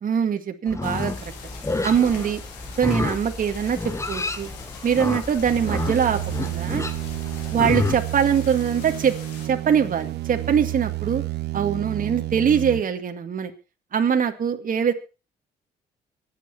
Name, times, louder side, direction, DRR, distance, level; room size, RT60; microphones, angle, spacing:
voice 1, 0.0-1.3 1.8-2.4 2.8-3.8 4.1-4.5 4.8-6.8 7.5-9.1 9.4-11.2 11.5-13.5 13.9-14.9, right 7 dB, 50° right, 5 dB, 2.0 m, -22 dB
Livestock farm animals working animals, 0.7-8.0, left 2 dB, 15° left, 1.5 m, -30 dB
sound 1, 0.8-9.5, left 6 dB, 90° left, 3.2 m, -43 dB
sound 2, 5.4-12.8, right 16 dB, 75° right, 1.4 m, -30 dB
24.0 x 8.6 x 4.3 m, 0.33 s
supercardioid pair, 65°, 17 cm